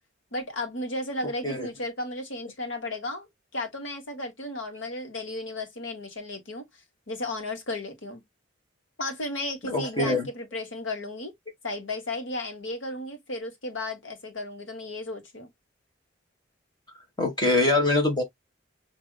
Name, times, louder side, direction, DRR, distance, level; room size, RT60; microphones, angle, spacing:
voice 1, 0.3-6.7 7.1-8.2 9.0-11.3 11.6-15.5, left 2 dB, 75° left, 1.4 m, -34 dB
voice 2, 9.6-10.3 17.2-18.2, left 2 dB, 20° left, 1.5 m, -23 dB
5.8 x 2.6 x 2.3 m
head